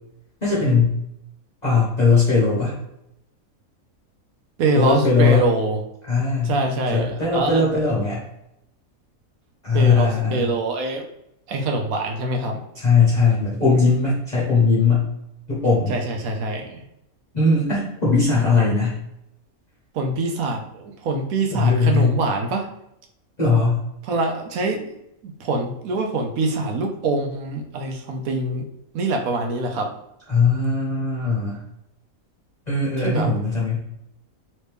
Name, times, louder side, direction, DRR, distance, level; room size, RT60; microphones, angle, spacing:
voice 1, 0.4-1.0 1.6-2.7 4.7-5.4 6.0-6.5 6.9-8.2 9.6-10.5 12.7-15.1 15.5-15.9 17.3-19.0 21.5-22.2 23.4-23.8 30.3-31.6 32.7-33.8, left 4 dB, 35° left, -7 dB, 1.1 m, -19 dB
voice 2, 4.6-5.8 6.4-7.7 9.7-11.1 11.5-12.6 15.9-16.8 19.9-22.7 24.0-25.0 25.4-28.7 28.9-29.9 33.0-33.3, right 2 dB, 80° right, 3 dB, 1.1 m, -24 dB
3.1 x 2.9 x 3.3 m, 0.82 s
omnidirectional pair, 1.5 m